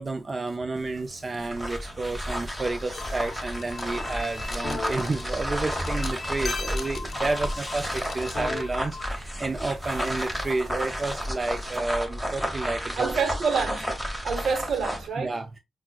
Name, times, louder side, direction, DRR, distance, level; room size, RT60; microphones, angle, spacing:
voice 1, 0.0-13.2 15.2-15.6, right 3 dB, 35° right, 0.3 m, -31 dB
sound 1, 0.7-11.8, right 2 dB, 50° right, 1.2 m, -48 dB
sound 2, 1.4-15.1, equal, 5° right, 0.8 m, -32 dB
sound 3, 2.9-9.1, left 4 dB, 55° left, 0.5 m, -37 dB
voice 2, 13.0-13.9 14.2-15.3, right 5 dB, 80° right, 0.7 m, -27 dB
5.8 x 2.0 x 2.2 m
cardioid pair, 100°, 0 cm